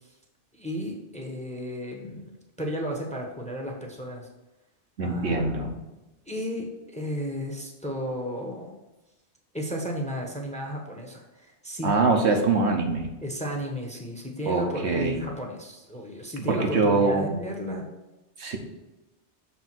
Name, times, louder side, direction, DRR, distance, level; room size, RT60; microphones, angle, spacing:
voice 1, 0.5-2.3 2.6-4.3 5.0-5.5 6.3-8.7 9.5-11.9 13.2-17.9, equal, 5° left, 1 dB, 0.9 m, -34 dB
voice 2, 5.0-5.8 11.8-13.1 14.5-15.3 16.5-17.3 18.4-18.6, right 3 dB, 70° right, 3 dB, 1.2 m, -24 dB
7.1 x 3.5 x 6.0 m, 1.0 s
omnidirectional pair, 1.2 m